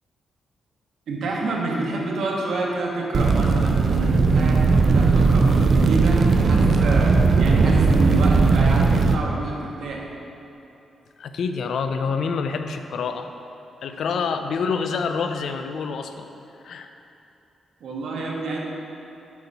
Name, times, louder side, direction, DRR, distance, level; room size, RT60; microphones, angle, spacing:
voice 1, 1.1-10.0 14.1-14.2 17.8-18.6, right 2 dB, 80° right, -2 dB, 1.2 m, -28 dB
sound 1, 3.1-9.1, right 4 dB, 55° right, 0.4 m, -17 dB
voice 2, 11.2-13.3 13.8-16.3 16.6-16.9, left 5 dB, 75° left, 7 dB, 0.4 m, -27 dB
8.2 x 4.1 x 5.3 m, 2.9 s
cardioid pair, 105°, 0 cm